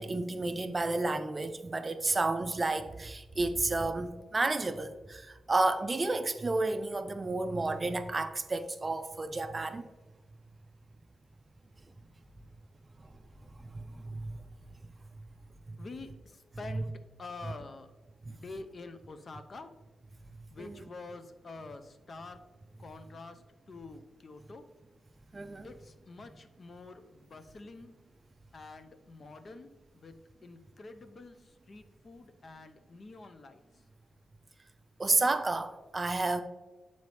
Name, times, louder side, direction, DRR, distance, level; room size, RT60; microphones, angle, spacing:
voice 1, 0.0-9.8 13.0-13.1 13.6-14.4 18.3-18.4 20.6-20.7 25.3-25.7 35.0-36.4, right 2 dB, 30° right, 0.4 m, -31 dB
voice 2, 15.8-17.9 18.3-19.7 20.5-22.4 22.8-24.7 25.6-27.9 28.5-30.1 30.4-33.6, left 3 dB, 45° left, 0.5 m, -47 dB
8.2 x 4.0 x 3.2 m
cardioid pair, 105°, 0 cm